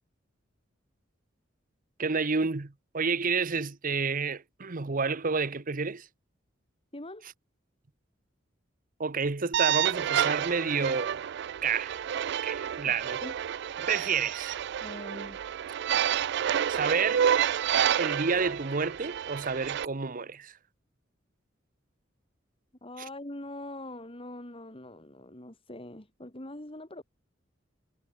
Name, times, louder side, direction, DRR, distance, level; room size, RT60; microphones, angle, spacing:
voice 1, 2.0-6.1 9.0-11.2 11.6-12.0 12.4-13.2 13.8-14.6 16.7-17.4 18.0-20.6, right 5 dB, 45° right, 0.9 m, -30 dB
voice 2, 6.9-7.3 12.8-12.9 13.2-13.3 14.8-15.4 22.8-27.0, left 1 dB, 30° left, 3.6 m, -43 dB
sound 1, 9.5-19.8, right 9 dB, 60° right, 0.4 m, -29 dB
head